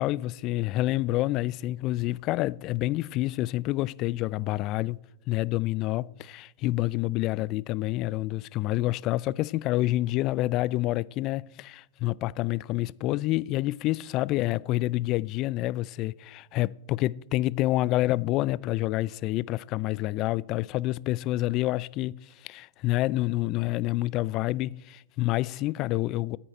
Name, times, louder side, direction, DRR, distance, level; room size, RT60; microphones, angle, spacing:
voice 1, 0.0-5.0 5.3-26.4, left 17 dB, 45° left, 0.3 m, -28 dB
14.5 x 8.9 x 4.3 m
hypercardioid pair, 100°, 0 cm